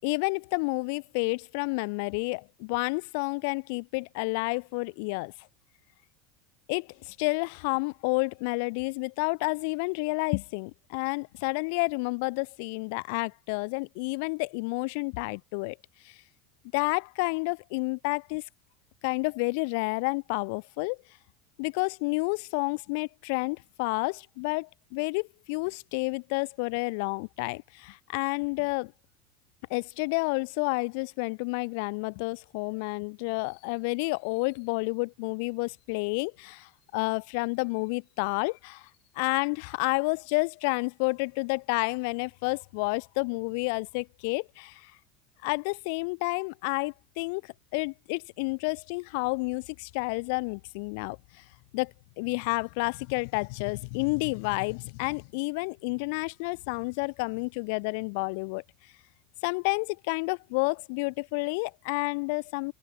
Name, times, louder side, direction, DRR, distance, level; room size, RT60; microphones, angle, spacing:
voice 1, 0.0-5.3 6.7-15.8 16.0-16.2 16.7-18.4 19.0-21.0 21.6-28.9 29.7-38.9 39.2-44.9 45.4-51.2 51.7-58.6 59.4-62.7, left 32 dB, 70° left, 5.4 m, -30 dB
supercardioid pair, 115°, 0 cm